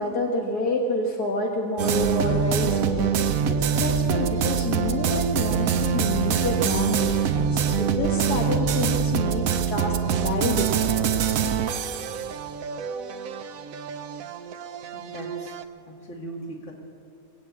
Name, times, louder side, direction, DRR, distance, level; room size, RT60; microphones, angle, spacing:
voice 1, 0.0-11.1, left 2 dB, 75° left, 0 dB, 1.8 m, -28 dB
sound 1, 1.8-15.6, right 7 dB, 65° right, 1.1 m, -25 dB
voice 2, 14.9-15.6 15.9-16.7, right 2 dB, 50° left, -1 dB, 2.7 m, -39 dB
21.0 x 8.1 x 8.4 m, 2.6 s
omnidirectional pair, 1.7 m